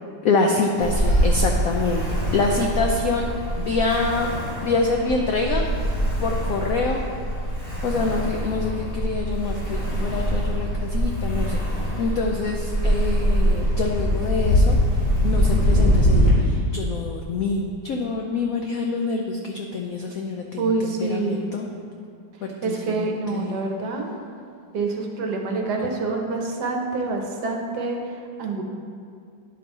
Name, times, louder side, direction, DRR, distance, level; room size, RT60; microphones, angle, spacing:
voice 1, 0.2-2.0 2.3-3.3 3.6-4.3 4.6-5.6 6.2-7.0 7.8-11.6 12.0-14.8 15.2-21.7 22.6-23.6, left 3 dB, 75° left, 2 dB, 0.8 m, -26 dB
Ocean, 0.8-16.3, equal, 20° left, 1.8 m, -23 dB
voice 2, 20.6-21.5 22.6-24.1 24.7-28.0 28.4-28.6, right 3 dB, 65° right, 2 dB, 1.3 m, -26 dB
10.0 x 5.3 x 4.1 m, 2.3 s
omnidirectional pair, 2.1 m